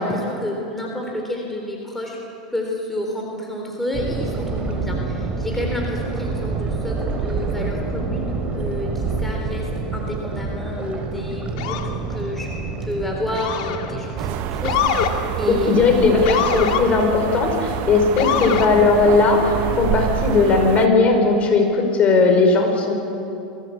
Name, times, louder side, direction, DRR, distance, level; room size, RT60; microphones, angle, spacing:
voice 1, 0.0-2.2 2.5-12.5 12.8-16.1 18.3-18.4, left 1 dB, 5° left, -1 dB, 3.8 m, -30 dB
sound 1, 3.9-14.9, right 4 dB, 30° right, 4.0 m, -27 dB
Motor vehicle (road) / Siren, 11.6-11.9 13.3-13.9 14.6-15.1 16.2-16.8 18.2-18.7, left 9 dB, 65° left, 2.2 m, -23 dB
sound 2, 14.2-20.9, right 12 dB, 50° right, 1.0 m, -27 dB
voice 2, 15.4-22.9, left 4 dB, 35° left, 3 dB, 5.3 m, -17 dB
23.5 x 16.0 x 8.5 m, 2.7 s
hypercardioid pair, 100°, 4 cm